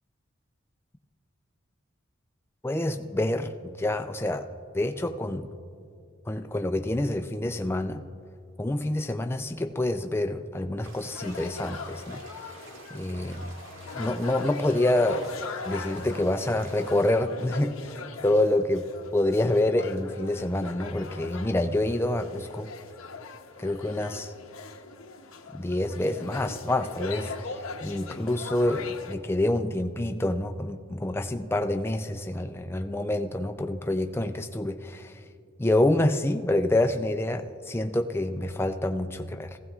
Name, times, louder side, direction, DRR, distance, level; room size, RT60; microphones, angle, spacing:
voice 1, 2.6-4.5 4.7-5.5 6.3-8.0 8.6-12.2 12.9-13.5 13.9-15.2 15.7-18.9 19.1-22.7 23.6-24.3 25.5-35.2 35.6-39.6, left 1 dB, 10° left, 6 dB, 0.4 m, -27 dB
sound 1, 10.8-17.2, right 2 dB, 70° right, 1.7 m, -48 dB
sound 2, 11.1-29.1, left 4 dB, 80° left, 0.8 m, -41 dB
18.5 x 15.5 x 2.4 m, 2.4 s
head